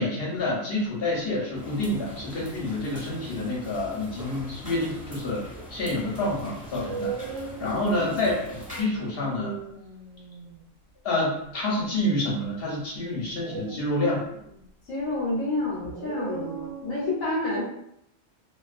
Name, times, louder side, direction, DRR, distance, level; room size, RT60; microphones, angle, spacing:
voice 1, 0.0-8.4 8.8-9.6 11.0-14.2, left 1 dB, 55° left, -4 dB, 0.8 m, -28 dB
sound 1, 0.7-1.1 2.0-2.5 5.5-5.6 6.7-10.6 13.4-14.7 15.8-17.1, right 5 dB, 65° right, 0.8 m, -39 dB
sound 2, 1.5-8.8, equal, 5° right, 0.8 m, -43 dB
voice 2, 7.6-8.2 14.9-17.6, left 2 dB, 75° left, -4 dB, 1.0 m, -29 dB
2.3 x 2.3 x 2.4 m, 0.76 s
omnidirectional pair, 1.4 m